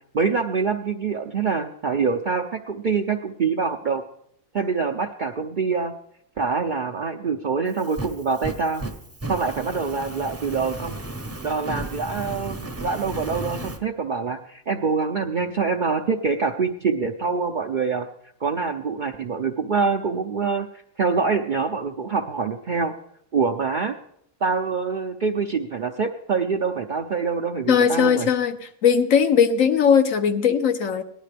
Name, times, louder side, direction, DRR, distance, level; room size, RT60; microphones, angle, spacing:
voice 1, 0.1-4.0 4.5-5.9 6.4-8.8 9.3-11.0 11.4-18.1 18.4-20.7 21.0-22.9 23.3-24.0 24.4-28.3, right 5 dB, 55° right, 3 dB, 0.5 m, -25 dB
Fire, 7.7-13.8, right 2 dB, 15° right, 0.6 m, -34 dB
voice 2, 27.7-31.0, left 7 dB, 70° left, 8 dB, 1.2 m, -19 dB
17.5 x 11.0 x 3.3 m, 0.70 s
omnidirectional pair, 1.5 m